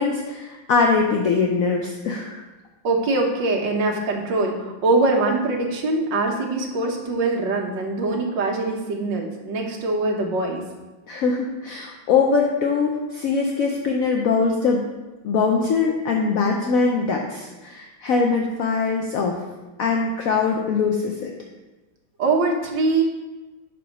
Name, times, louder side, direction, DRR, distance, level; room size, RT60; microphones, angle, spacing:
voice 1, 0.0-2.4 11.1-14.8 15.2-19.4 19.8-21.3, left 4 dB, 70° left, 1 dB, 0.8 m, -22 dB
voice 2, 2.8-10.6 22.2-23.0, right 3 dB, 65° right, 0 dB, 1.7 m, -23 dB
5.3 x 4.8 x 5.9 m, 1.1 s
omnidirectional pair, 2.1 m